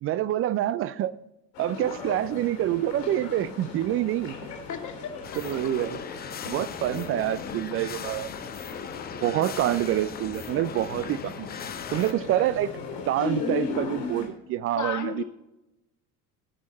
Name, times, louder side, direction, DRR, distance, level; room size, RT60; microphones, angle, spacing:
voice 1, 0.0-1.1 1.6-4.4 5.4-6.0 6.4-8.3 9.1-11.5 11.9-12.7 13.1-15.2, right 12 dB, 30° right, 17 dB, 0.4 m, -27 dB
sound 1, 1.5-14.3, left 4 dB, 70° left, 3.7 m, -37 dB
voice 2, 4.7-5.4 14.8-15.2, left 7 dB, 35° left, 5 dB, 1.9 m, -34 dB
sound 2, 5.2-12.1, left 8 dB, 20° left, 0.5 m, -39 dB
17.5 x 6.3 x 4.1 m, 0.94 s
figure-of-eight pair, 65°, 48 cm